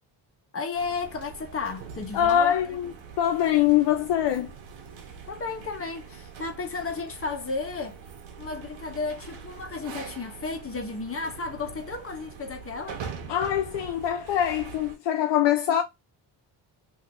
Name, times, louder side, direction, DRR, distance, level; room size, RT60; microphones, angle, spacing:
voice 1, 0.5-2.8 5.3-8.0 8.4-13.0, left 4 dB, 30° left, 1.0 m, -33 dB
sound 1, 0.7-15.0, right 6 dB, 80° right, 1.0 m, -43 dB
voice 2, 2.1-4.5 13.3-15.8, left 10 dB, 65° left, 0.6 m, -23 dB
2.9 x 2.6 x 3.3 m
supercardioid pair, 65°, 46 cm